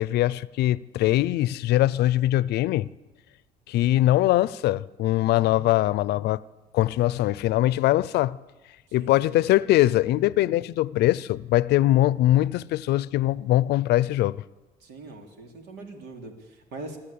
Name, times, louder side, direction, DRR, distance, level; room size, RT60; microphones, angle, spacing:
voice 1, 0.0-2.9 3.7-6.4 6.7-8.4 8.9-14.4, left 15 dB, 75° left, 0.6 m, -22 dB
voice 2, 8.9-9.4 14.8-17.0, right 2 dB, 85° right, 3.6 m, -42 dB
26.5 x 12.0 x 8.6 m
cardioid pair, 110°, 17 cm